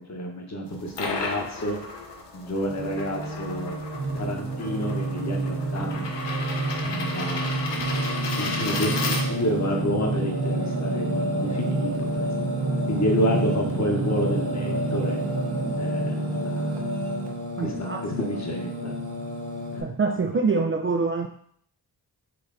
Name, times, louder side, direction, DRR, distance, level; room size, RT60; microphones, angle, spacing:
voice 1, 0.0-1.8 2.3-3.8 4.1-6.4 6.8-8.0 8.4-12.5 12.9-15.2 15.8-16.8 17.6-18.9 19.7-19.9, equal, 40° left, 0 dB, 1.2 m, -29 dB
sound 1, 0.7-9.7, left 3 dB, 80° left, 0.9 m, -34 dB
Singing, 2.7-19.8, right 1 dB, 65° right, 1.2 m, -28 dB
voice 2, 17.6-18.0 19.8-21.3, right 4 dB, 30° right, 3 dB, 0.4 m, -25 dB
4.2 x 3.2 x 3.9 m, 0.63 s
cardioid pair, 80°, 42 cm